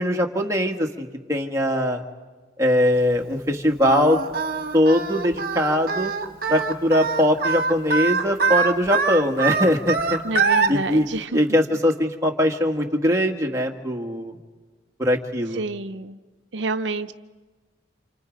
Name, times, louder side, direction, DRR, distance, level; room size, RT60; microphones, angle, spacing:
voice 1, 0.0-2.0 2.6-4.2 4.7-6.1 6.5-10.2 10.7-11.1 11.3-14.4 15.0-15.6, equal, 15° right, 1 dB, 1.7 m, -21 dB
Singing, 3.8-10.7, right 5 dB, 50° right, 1.6 m, -23 dB
voice 2, 10.2-11.4 15.5-16.2 16.5-17.1, right 3 dB, 75° right, 10 dB, 0.7 m, -28 dB
29.0 x 28.0 x 5.2 m, 1.4 s
head